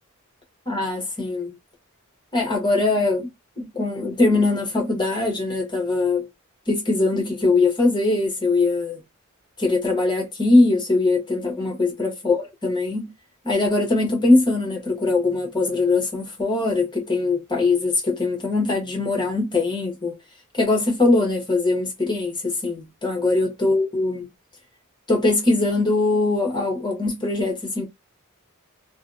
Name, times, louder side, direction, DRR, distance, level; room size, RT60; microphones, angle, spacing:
voice 1, 0.7-1.5 2.3-3.3 3.6-6.3 6.7-9.0 9.6-13.1 13.4-20.2 20.5-24.3 25.1-27.8, left 2 dB, 20° left, 1.0 m, -21 dB
2.6 x 2.1 x 2.5 m
head